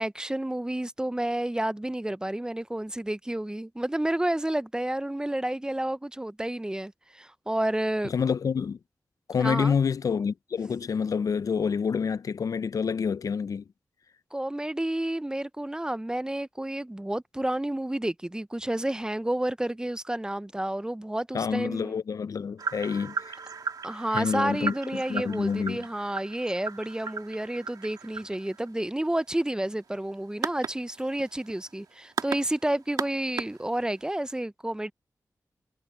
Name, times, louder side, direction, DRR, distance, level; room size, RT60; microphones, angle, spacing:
voice 1, 0.0-8.1 9.4-9.8 14.3-21.9 23.8-34.9, right 1 dB, 10° right, 0.5 m, -30 dB
voice 2, 8.0-8.8 9.3-13.6 21.3-23.4 24.1-25.8, left 6 dB, 65° left, 0.4 m, -28 dB
sound 1, 22.6-34.1, right 5 dB, 90° right, 2.2 m, -37 dB
wide cardioid pair, 75°, 6 cm